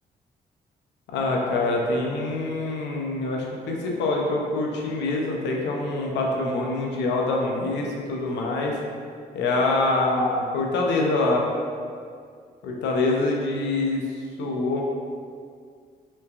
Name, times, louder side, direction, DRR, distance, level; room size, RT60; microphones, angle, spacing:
voice 1, 1.1-8.8 9.3-11.5 12.6-14.0 14.4-14.8, left 2 dB, 85° left, 0 dB, 0.5 m, -25 dB
3.2 x 3.2 x 2.4 m, 2.1 s
supercardioid pair, 50°, 18 cm